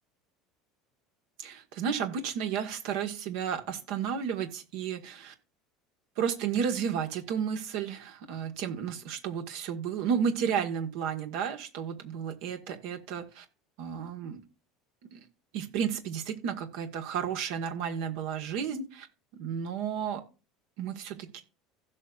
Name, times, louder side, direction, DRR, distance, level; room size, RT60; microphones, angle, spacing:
voice 1, 1.4-5.3 6.2-13.4 13.8-14.4 15.1-15.2 15.5-19.1 19.4-20.2 20.8-21.4, right 7 dB, 60° right, 6 dB, 1.5 m, -32 dB
16.0 x 6.3 x 2.5 m, 0.32 s
figure-of-eight pair, 70°, 0 cm